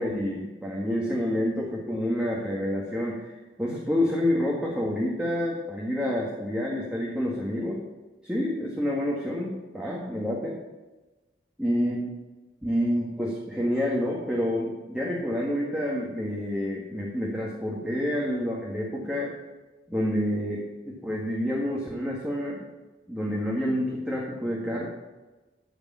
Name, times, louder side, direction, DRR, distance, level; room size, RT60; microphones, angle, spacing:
voice 1, 0.0-7.8 8.2-10.6 11.6-12.0 12.6-19.3 19.9-22.6 23.1-24.9, equal, 5° right, -4 dB, 1.8 m, -28 dB
14.0 x 5.2 x 7.4 m, 1.1 s
head